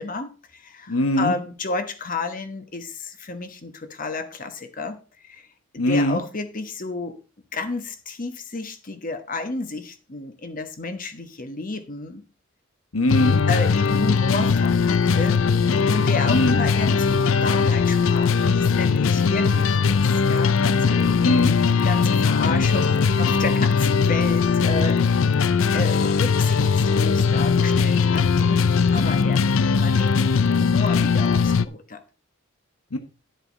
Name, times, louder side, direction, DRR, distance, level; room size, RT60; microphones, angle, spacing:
voice 1, 0.0-5.5 5.9-7.1 7.5-12.2 13.5-15.4 15.6-21.2 21.7-25.5 25.7-32.0, left 3 dB, 40° left, 1.2 m, -31 dB
voice 2, 0.9-1.3 5.8-6.2 12.9-13.4 16.3-16.6 21.1-21.6 32.9-33.0, left 1 dB, 90° left, 1.3 m, -21 dB
sound 1, 13.1-31.7, left 5 dB, 70° left, 0.5 m, -20 dB
10.5 x 8.0 x 4.0 m
head